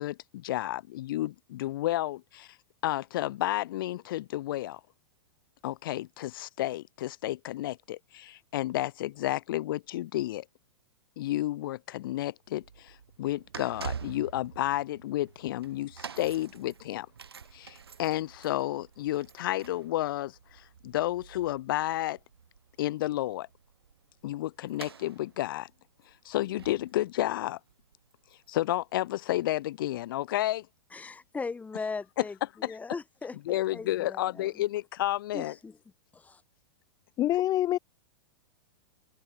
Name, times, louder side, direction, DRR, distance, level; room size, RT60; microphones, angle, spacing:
voice 1, 0.0-2.6 2.8-4.8 5.6-10.4 11.2-17.1 17.5-22.2 22.8-23.5 24.2-25.7 26.2-27.6 28.5-30.7 32.6-32.7 33.5-35.5, left 15 dB, 60° left, 1.0 m, -31 dB
sound 1, 12.5-29.4 30.1-30.2, right 6 dB, 85° right, 3.8 m, -47 dB
voice 2, 30.9-34.6 35.3-35.8 36.1-36.4, left 4 dB, 10° left, 1.8 m, -39 dB
voice 3, 37.2-37.8, left 13 dB, 30° left, 0.8 m, -25 dB
hypercardioid pair, 110°, 13 cm